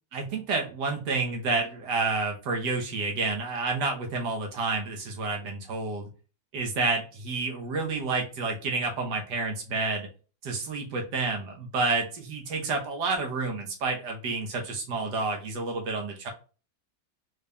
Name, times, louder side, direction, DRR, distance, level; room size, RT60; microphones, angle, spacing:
voice 1, 0.1-6.1 6.5-10.1 10.4-16.3, right 3 dB, 85° right, 2 dB, 1.5 m, -29 dB
4.1 x 3.4 x 2.3 m, 0.35 s
omnidirectional pair, 1.8 m